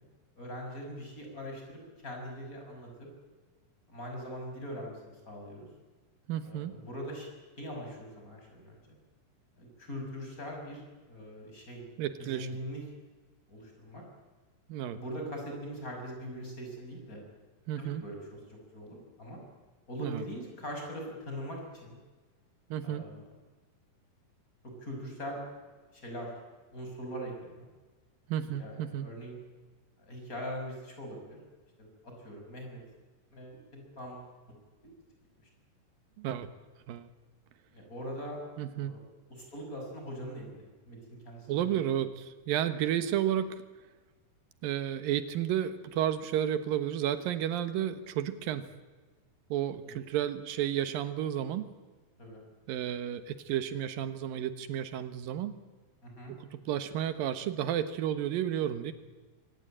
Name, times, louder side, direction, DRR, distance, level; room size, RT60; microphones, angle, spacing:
voice 1, 0.4-2.9 3.9-5.7 6.4-7.3 7.6-8.8 9.6-10.8 11.1-11.9 12.2-12.8 13.5-14.0 14.9-17.2 17.8-18.2 18.5-19.4 19.9-22.0 22.8-23.2 24.8-25.4 25.9-26.3 26.7-27.7 28.6-29.4 30.0-31.4 31.8-32.8 33.3-34.3 34.8-34.9 37.7-38.4 38.8-39.0 39.3-41.0 41.2-41.8 49.9-50.0 52.2-52.4 56.0-56.3, equal, 25° left, 1 dB, 6.4 m, -41 dB
voice 2, 6.3-6.7 12.0-12.5 14.7-15.0 17.7-18.0 20.0-20.2 22.7-23.0 28.3-29.1 36.2-36.5 36.9-37.1 38.6-39.0 41.5-43.6 44.6-48.6 49.5-51.6 52.7-55.5 56.3-58.9, right 10 dB, 90° right, 11 dB, 3.0 m, -32 dB
24.0 x 18.5 x 8.9 m, 1.3 s
omnidirectional pair, 3.9 m